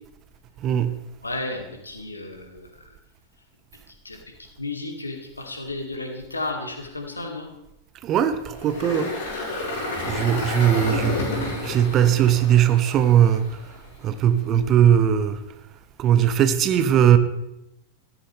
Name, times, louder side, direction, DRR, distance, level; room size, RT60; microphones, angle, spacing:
voice 1, 0.6-1.0 8.0-9.5 10.1-13.7 14.0-15.4 16.0-17.2, right 9 dB, 35° right, 0.9 m, -20 dB
voice 2, 1.2-2.7 4.0-4.2 4.6-7.5, left 2 dB, 80° left, 2.0 m, -33 dB
Engine, 8.5-13.7, left 2 dB, 55° left, 5.1 m, -30 dB
14.5 x 13.5 x 3.4 m
figure-of-eight pair, 90°, 0 cm